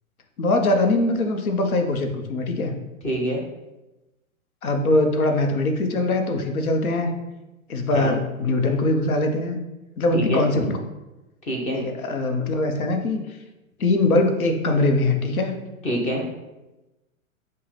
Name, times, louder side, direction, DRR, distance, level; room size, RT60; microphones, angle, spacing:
voice 1, 0.4-2.7 4.6-7.1 7.7-9.6 10.0-10.7 11.7-13.2 13.8-15.5, left 2 dB, 80° left, 4 dB, 0.8 m, -22 dB
voice 2, 3.0-3.4 7.9-8.2 10.1-10.7 11.4-11.9 15.8-16.3, equal, 15° left, -1 dB, 0.7 m, -26 dB
5.5 x 2.2 x 3.2 m, 1.0 s
hypercardioid pair, 120°, 42 cm